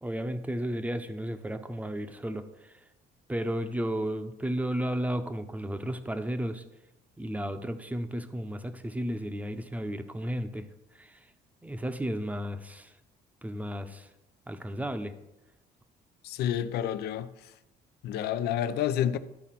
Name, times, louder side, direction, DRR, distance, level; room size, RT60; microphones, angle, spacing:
voice 1, 0.0-2.7 3.3-6.6 7.2-10.7 11.0-11.2 11.6-12.9 13.4-14.1 14.5-15.1, equal, 10° right, 0.7 m, -33 dB
voice 2, 16.2-17.5 18.0-19.2, left 10 dB, 75° left, 0.6 m, -29 dB
12.0 x 4.1 x 5.8 m
cardioid pair, 110°, 17 cm